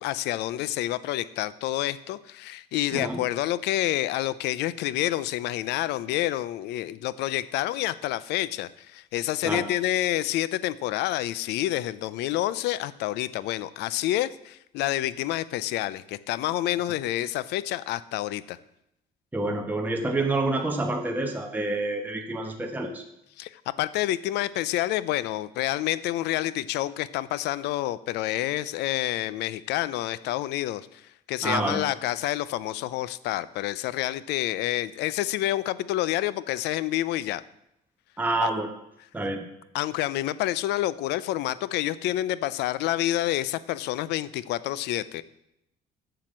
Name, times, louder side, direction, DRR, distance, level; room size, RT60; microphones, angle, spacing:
voice 1, 0.0-18.6 23.4-31.0 31.3-37.4 38.4-38.5 39.7-45.2, left 14 dB, 85° left, 17 dB, 0.5 m, -28 dB
voice 2, 19.3-23.0 31.4-31.8 38.2-38.7 39.1-39.4, right 2 dB, 10° right, 2 dB, 1.0 m, -28 dB
7.5 x 7.0 x 7.4 m, 0.82 s
cardioid pair, 110°, 17 cm